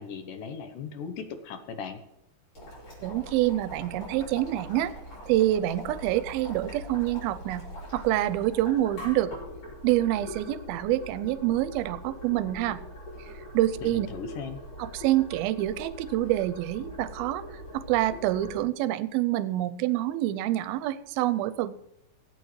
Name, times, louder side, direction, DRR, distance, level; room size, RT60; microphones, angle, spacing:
voice 1, 0.0-2.0 13.9-14.6, left 5 dB, 70° left, 8 dB, 2.3 m, -38 dB
Boiling, 2.5-18.6, equal, 40° left, 6.8 m, -42 dB
voice 2, 3.0-4.9 5.3-7.6 7.9-9.3 9.8-12.8 13.5-14.1 14.8-17.4 17.7-21.7, right 14 dB, 85° right, 15 dB, 2.5 m, -26 dB
24.0 x 8.8 x 3.2 m, 0.83 s
omnidirectional pair, 4.3 m